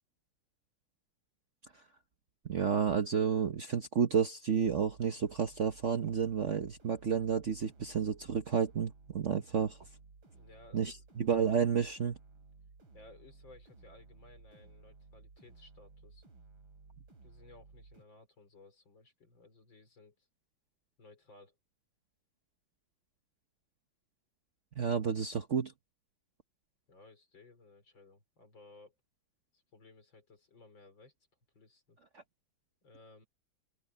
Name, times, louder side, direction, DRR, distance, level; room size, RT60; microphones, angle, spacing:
voice 1, 2.4-9.8 10.7-12.2 24.8-25.7, right 7 dB, 50° right, 1.0 m, -31 dB
sound 1, 4.6-18.0, right 4 dB, 85° right, 4.5 m, -58 dB
voice 2, 10.3-11.1 12.9-16.2 17.2-20.2 21.0-21.6 26.9-29.0 29.5-31.1 31.5-32.0 32.8-33.3, left 3 dB, 70° left, 5.4 m, -58 dB
omnidirectional pair, 2.2 m